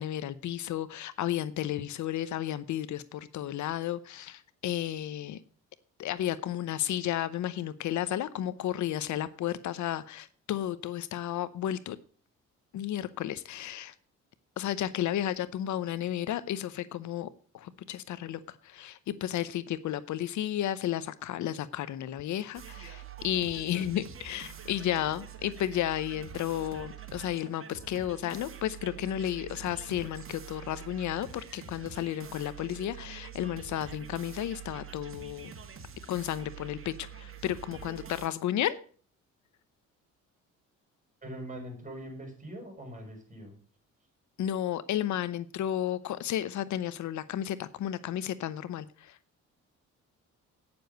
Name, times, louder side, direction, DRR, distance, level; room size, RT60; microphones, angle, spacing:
voice 1, 0.0-5.4 6.0-12.0 12.7-13.9 14.6-17.3 17.5-35.5 36.1-38.8 44.4-49.2, left 11 dB, 70° left, 16 dB, 0.8 m, -33 dB
sound 1, 22.5-38.3, right 8 dB, 45° right, 1.8 m, -46 dB
voice 2, 41.2-43.6, right 1 dB, 25° right, 2 dB, 5.9 m, -42 dB
9.2 x 7.0 x 7.9 m, 0.43 s
cardioid pair, 90°, 30 cm